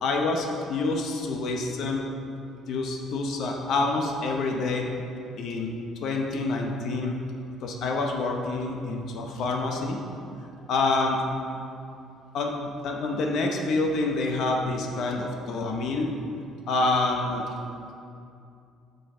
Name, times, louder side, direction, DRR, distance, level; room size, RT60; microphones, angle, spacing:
voice 1, 0.0-2.0 2.7-4.9 5.4-5.7 6.0-7.2 7.6-10.0 10.7-11.2 12.3-16.1 16.7-17.5, left 3 dB, 50° left, 1 dB, 0.8 m, -27 dB
9.6 x 5.6 x 3.8 m, 2.5 s
cardioid pair, 165°, 0 cm